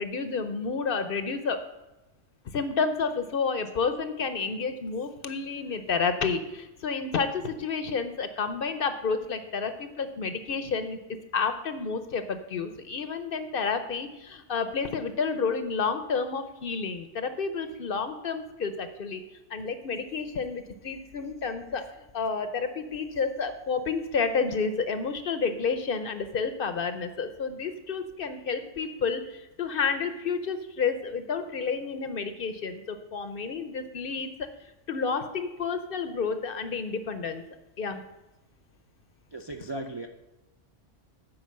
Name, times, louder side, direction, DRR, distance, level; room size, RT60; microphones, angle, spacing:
voice 1, 0.0-1.6 2.5-11.0 11.3-19.2 19.5-21.9 22.1-34.5 34.9-37.4 37.8-38.0, left 5 dB, 55° left, 9 dB, 0.8 m, -30 dB
voice 2, 39.3-40.1, right 2 dB, 40° right, 4 dB, 0.3 m, -36 dB
8.9 x 4.9 x 7.4 m, 1.0 s
omnidirectional pair, 1.3 m